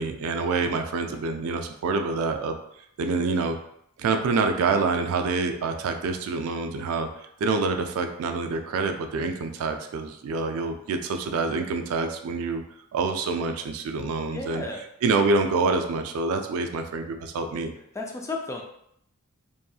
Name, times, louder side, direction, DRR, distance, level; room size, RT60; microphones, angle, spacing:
voice 1, 0.0-2.6 3.0-3.6 4.0-7.1 7.4-12.6 12.9-14.6 15.0-17.7, right 4 dB, 75° right, 6 dB, 0.3 m, -26 dB
voice 2, 14.3-14.8 17.9-18.6, left 3 dB, 15° left, 1 dB, 0.3 m, -33 dB
2.7 x 2.6 x 2.3 m, 0.73 s
head